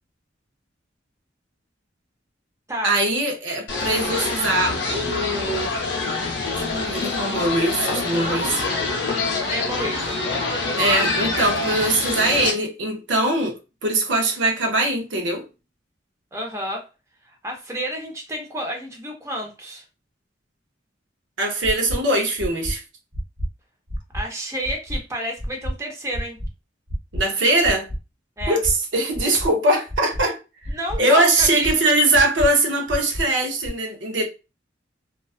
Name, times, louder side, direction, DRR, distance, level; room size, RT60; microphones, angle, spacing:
voice 1, 2.8-5.7 6.6-8.6 10.8-13.6 13.8-15.4 21.4-22.8 27.1-27.9 28.5-30.4 31.0-34.2, right 2 dB, 75° right, 0.6 m, -21 dB
sound 1, 3.7-12.5, left 3 dB, 65° left, 0.7 m, -25 dB
voice 2, 9.5-10.2 16.3-16.9 17.2-19.8 24.1-26.4 28.4-28.6 30.7-31.7, equal, 15° right, 0.6 m, -30 dB
sound 2, 21.6-22.0 22.4-22.7 23.1-23.5 23.9-24.2 24.6-25.0 25.4-25.7 26.1-26.5 26.9-27.2 27.6-28.0 28.4-28.7 29.1-29.5 29.9-30.2 30.6-31.0 31.4-31.7 32.1-32.5 32.9-33.2 33.6-33.7, equal, 45° right, 0.9 m, -28 dB
2.4 x 2.3 x 2.4 m
head